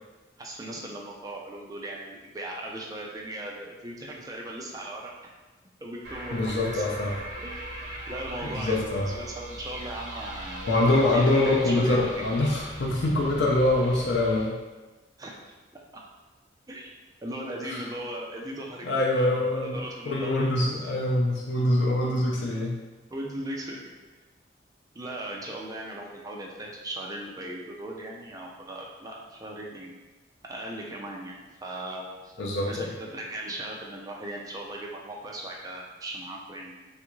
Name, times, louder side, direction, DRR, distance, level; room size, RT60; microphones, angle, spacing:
voice 1, 0.4-5.1 5.8-6.8 7.4-12.6 15.2-15.4 15.7-16.0 16.7-16.9 17.2-18.9 19.2-20.5 20.7-20.9 23.1-23.9 24.9-29.9 30.4-31.3 31.6-32.3 32.6-36.9, right 1 dB, 20° right, -2 dB, 0.4 m, -38 dB
sound 1, 6.0-14.5, right 1 dB, 55° right, 0.8 m, -40 dB
voice 2, 6.3-7.1 8.5-9.1 10.7-14.6 17.6-17.8 18.8-19.8 20.1-22.8 32.4-32.9, left 2 dB, 75° left, -3 dB, 0.5 m, -24 dB
3.4 x 2.4 x 3.0 m, 1.2 s
head